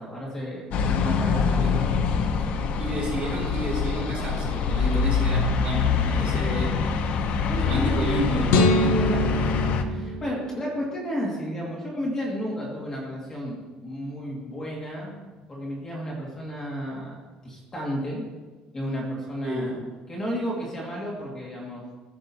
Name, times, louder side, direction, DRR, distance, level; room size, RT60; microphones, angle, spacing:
voice 1, 0.0-2.6 4.7-5.0 6.0-6.3 7.5-7.7 8.9-17.2 17.4-18.3 18.7-19.8 20.1-21.9, equal, 20° left, -3 dB, 1.9 m, -33 dB
sound 1, 0.7-9.8, left 5 dB, 55° left, 0.6 m, -25 dB
voice 2, 2.8-6.9 7.6-8.9 19.4-19.8, right 1 dB, 40° right, -3 dB, 3.0 m, -30 dB
sound 2, 8.5-10.8, left 1 dB, 85° left, 0.8 m, -24 dB
14.5 x 6.1 x 2.8 m, 1.3 s
cardioid pair, 160°, 3 cm